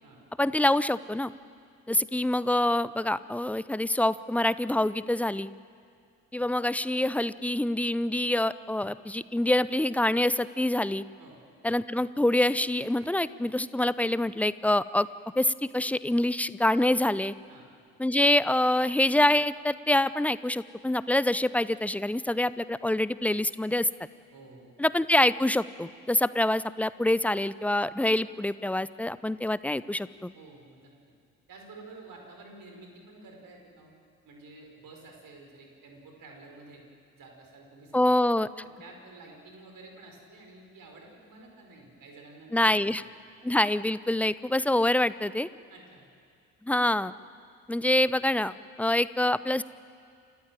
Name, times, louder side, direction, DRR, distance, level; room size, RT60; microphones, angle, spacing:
voice 1, 0.4-1.3 1.9-5.5 6.3-11.0 11.6-15.1 15.4-17.3 18.0-23.9 24.8-30.3 37.9-38.5 42.5-43.0 43.4-45.5 46.6-47.1 47.7-49.6, left 1 dB, 5° left, 17 dB, 0.6 m, -26 dB
voice 2, 24.3-24.7 30.3-30.9 31.5-33.9 34.2-36.8 37.1-38.2 38.6-42.8 45.7-46.1 47.8-47.9, right 3 dB, 50° right, 1 dB, 5.3 m, -50 dB
28.0 x 15.0 x 9.1 m, 2.3 s
figure-of-eight pair, 45°, 41 cm